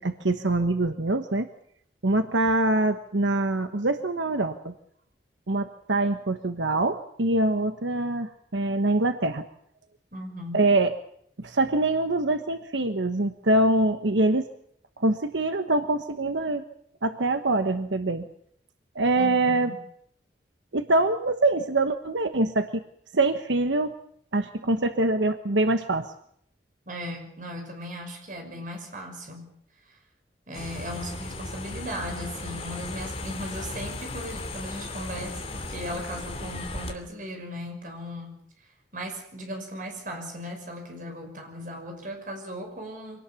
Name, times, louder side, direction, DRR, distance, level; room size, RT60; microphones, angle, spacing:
voice 1, 0.0-1.5 2.0-4.7 5.5-9.4 10.5-10.9 11.4-14.5 15.0-16.6 17.0-18.3 18.9-19.7 20.7-22.8 23.1-23.9 24.3-26.1, right 2 dB, 90° right, 8 dB, 1.2 m, -24 dB
voice 2, 10.1-10.7 19.1-19.8 26.9-29.5 30.5-38.4 38.9-43.2, equal, 45° right, 3 dB, 5.9 m, -37 dB
sound 1, 30.5-36.9, left 2 dB, 35° left, 2.8 m, -36 dB
24.5 x 18.5 x 7.2 m, 0.67 s
head